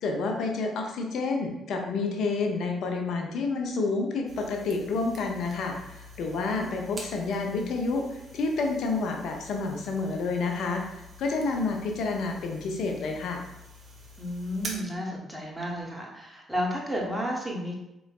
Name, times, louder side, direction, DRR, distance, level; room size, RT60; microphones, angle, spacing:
voice 1, 0.0-8.0 8.3-10.8 11.2-13.4, left 3 dB, 55° left, 3 dB, 0.5 m, -29 dB
sound 1, 4.3-14.7, right 1 dB, 40° right, 0.7 m, -47 dB
voice 2, 14.2-17.7, equal, 10° right, -2 dB, 1.0 m, -32 dB
4.0 x 3.0 x 2.3 m, 0.91 s
figure-of-eight pair, 40°, 0 cm